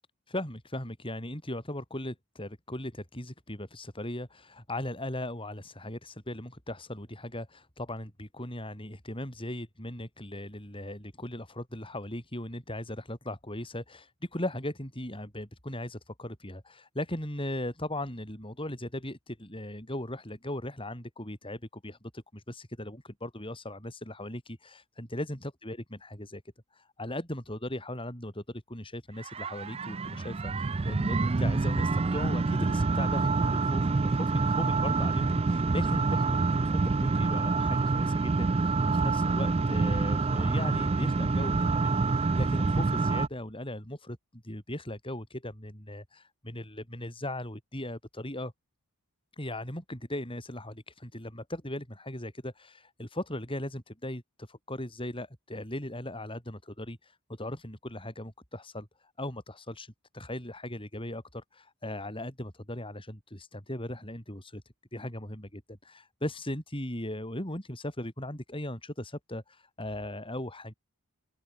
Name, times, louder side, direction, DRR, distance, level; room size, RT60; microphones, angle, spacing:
voice 1, 0.3-26.4 26.7-44.2 44.4-48.5 49.3-64.6 64.9-70.7, left 1 dB, 25° left, 7.7 m, -38 dB
sound 1, 29.2-43.3, right 3 dB, 25° right, 0.4 m, -27 dB
open air
head